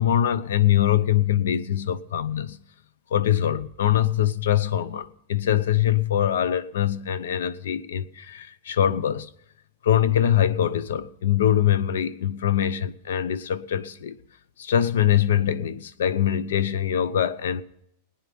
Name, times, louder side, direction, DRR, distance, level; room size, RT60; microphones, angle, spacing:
voice 1, 0.0-2.6 3.1-9.3 9.8-14.2 14.6-17.6, left 10 dB, 90° left, 0.8 m, -23 dB
18.5 x 9.9 x 5.3 m
supercardioid pair, 155°, 0 cm